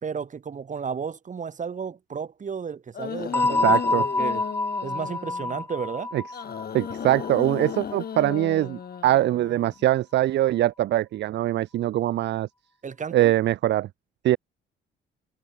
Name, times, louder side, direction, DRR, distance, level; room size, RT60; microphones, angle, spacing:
voice 1, 0.0-4.4 4.8-6.1 12.8-13.3, right 6 dB, 40° right, 2.1 m, -33 dB
sound 1, 2.9-5.6 6.3-9.8, left 8 dB, 50° left, 2.7 m, -35 dB
sound 2, 3.3-8.0, left 2 dB, 10° left, 0.6 m, -27 dB
voice 2, 3.6-4.0 6.7-12.5 13.1-13.9 14.2-14.4, right 14 dB, 60° right, 0.5 m, -22 dB
cardioid pair, 90°, 20 cm